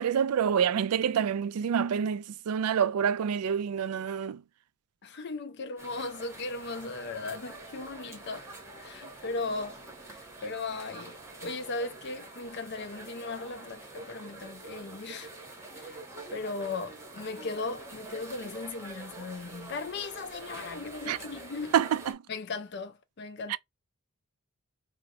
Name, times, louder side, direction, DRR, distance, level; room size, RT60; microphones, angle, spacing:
voice 1, 0.0-4.4 21.1-21.2 21.7-22.2 23.5-23.6, right 8 dB, 80° right, 0.3 m, -27 dB
voice 2, 5.0-8.5 8.8-9.8 10.4-11.1 11.4-15.3 15.8-16.0 16.3-21.7 22.3-23.6, left 3 dB, 50° left, 0.5 m, -37 dB
sound 1, 5.8-22.1, right 2 dB, 10° right, 0.8 m, -46 dB
4.0 x 2.0 x 2.6 m
head